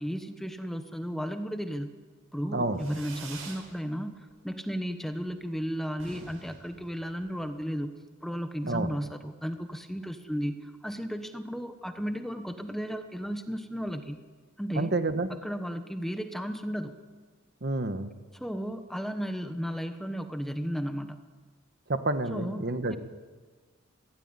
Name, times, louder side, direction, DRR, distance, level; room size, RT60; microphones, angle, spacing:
voice 1, 0.0-1.9 2.3-4.1 4.4-7.9 8.2-14.2 14.6-14.9 15.3-16.9 18.3-21.2 22.3-23.0, equal, ahead, 7 dB, 1.1 m, -34 dB
Fireworks, 2.7-3.7 4.0-4.6 4.9-5.0 5.2-5.3 5.6-5.7 5.9-7.5, right 3 dB, 85° right, 7.4 m, -46 dB
voice 2, 14.8-15.3 17.6-18.1 21.9-23.0, right 2 dB, 50° right, 9 dB, 1.4 m, -29 dB
23.0 x 16.0 x 9.7 m, 1.4 s
head